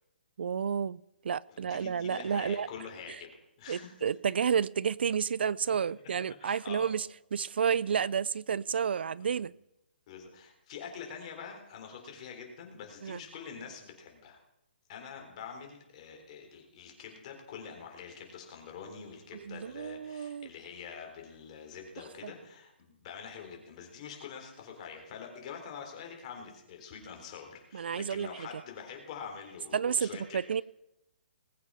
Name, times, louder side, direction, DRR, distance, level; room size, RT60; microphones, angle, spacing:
voice 1, 0.4-1.0 1.2-2.7 3.7-9.5 13.0-13.2 19.3-20.5 22.2-22.3 27.7-28.3 29.7-30.6, right 7 dB, 65° right, 23 dB, 0.4 m, -31 dB
voice 2, 1.5-3.3 3.6-3.9 6.4-6.9 9.2-9.4 10.1-14.4 14.9-30.4, left 6 dB, 35° left, 2 dB, 3.8 m, -45 dB
20.0 x 8.3 x 5.6 m, 0.89 s
hypercardioid pair, 160°, 6 cm